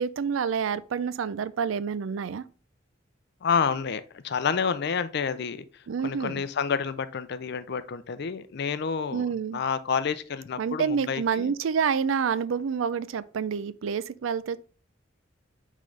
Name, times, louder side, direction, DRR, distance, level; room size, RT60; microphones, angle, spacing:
voice 1, 0.0-2.4 5.9-6.4 9.1-9.6 10.6-14.6, right 6 dB, 85° right, 0.4 m, -28 dB
voice 2, 3.4-5.6 6.0-11.5, left 6 dB, 60° left, 0.5 m, -29 dB
9.1 x 3.7 x 3.3 m
head